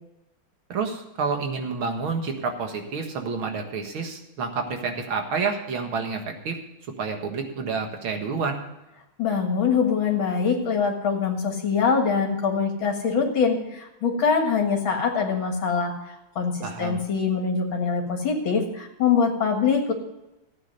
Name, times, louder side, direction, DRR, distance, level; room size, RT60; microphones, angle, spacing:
voice 1, 0.7-6.6 7.0-8.6 16.6-17.0, right 5 dB, 80° right, 4 dB, 2.5 m, -29 dB
voice 2, 9.2-15.9 16.4-19.9, left 5 dB, 75° left, 2 dB, 2.6 m, -23 dB
15.0 x 8.9 x 5.3 m, 0.95 s
omnidirectional pair, 2.2 m